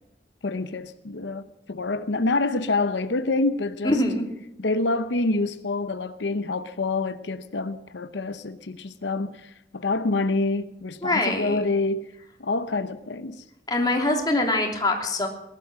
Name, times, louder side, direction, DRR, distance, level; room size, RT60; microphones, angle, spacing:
voice 1, 0.4-4.0 4.6-12.1 12.4-13.4, left 3 dB, 85° left, 0.8 m, -27 dB
voice 2, 3.8-4.2 11.0-11.6 13.7-15.3, left 2 dB, 20° left, 3.0 m, -23 dB
20.0 x 11.5 x 6.2 m
head